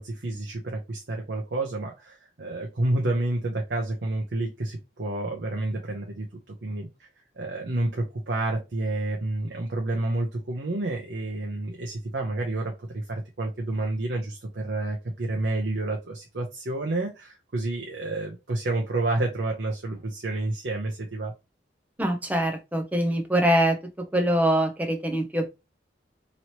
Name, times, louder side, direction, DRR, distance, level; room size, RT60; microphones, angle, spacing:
voice 1, 0.0-6.3 6.6-7.1 7.4-21.3, right 2 dB, 65° right, 0.7 m, -29 dB
voice 2, 22.0-23.8 24.1-25.5, right 1 dB, 10° right, 0.5 m, -23 dB
3.0 x 2.8 x 2.9 m
head